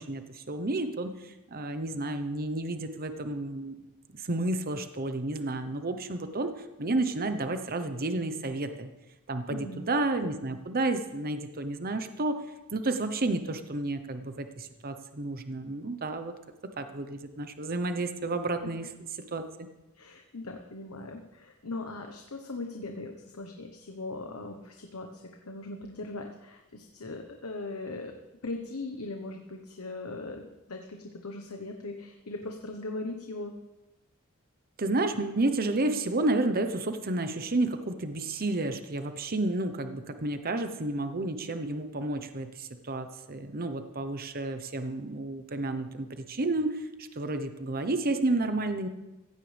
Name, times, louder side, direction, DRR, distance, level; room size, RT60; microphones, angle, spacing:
voice 1, 0.0-3.8 4.2-8.9 9.3-12.4 12.7-16.3 16.8-18.9 19.3-19.4 34.8-48.9, right 2 dB, 45° right, 8 dB, 0.9 m, -31 dB
voice 2, 9.5-9.8 19.9-28.1 28.4-33.6, left 2 dB, 85° left, 3 dB, 1.2 m, -39 dB
16.0 x 15.5 x 3.5 m, 1.0 s
head